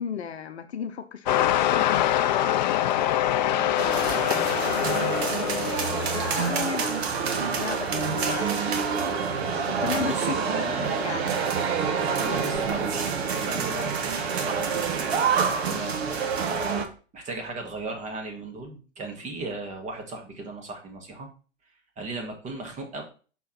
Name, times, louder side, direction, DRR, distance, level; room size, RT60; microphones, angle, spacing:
voice 1, 0.0-1.6 6.1-8.5 9.7-11.3, left 7 dB, 60° left, 8 dB, 0.8 m, -34 dB
sound 1, 1.3-7.6 8.4-8.5, left 12 dB, 40° left, 0.5 m, -25 dB
voice 2, 3.3-5.5 9.9-11.0 12.2-13.1 13.3-15.2 15.5-16.2 17.1-21.3 22.0-23.0, right 3 dB, 20° right, 2 dB, 1.9 m, -37 dB
sound 2, 3.8-16.9, right 5 dB, 55° right, 1.4 m, -27 dB
6.2 x 4.4 x 5.8 m, 0.37 s
figure-of-eight pair, 110°, 37 cm